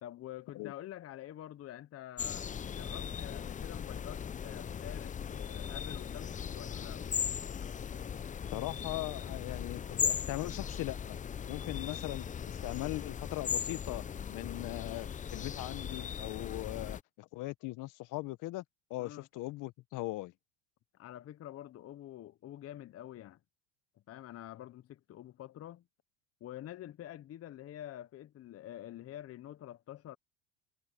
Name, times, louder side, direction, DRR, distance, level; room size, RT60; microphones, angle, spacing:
voice 1, 0.0-7.0 19.0-19.3 20.9-23.4 24.1-25.8 26.4-30.2, left 12 dB, 40° left, 1.0 m, -47 dB
sound 1, 2.2-17.0, left 7 dB, 20° left, 0.6 m, -38 dB
voice 2, 8.5-11.2 11.5-14.0 14.3-18.6 18.9-20.3, left 19 dB, 55° left, 1.3 m, -40 dB
supercardioid pair, 90°, 36 cm